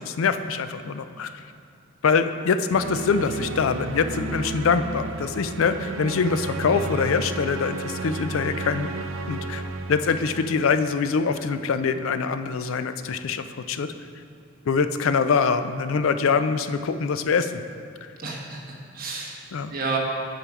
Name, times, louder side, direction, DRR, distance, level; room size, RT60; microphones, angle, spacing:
voice 1, 0.2-1.3 2.0-8.9 9.3-9.6 9.9-13.9 14.7-17.6 18.0-18.1 19.5-19.7, left 5 dB, 75° left, 10 dB, 0.4 m, -24 dB
sound 1, 2.7-11.5, right 3 dB, 70° right, 0.5 m, -33 dB
voice 2, 6.7-7.0 18.2-20.0, right 4 dB, 45° right, -1 dB, 1.3 m, -32 dB
8.9 x 5.5 x 4.8 m, 2.4 s
head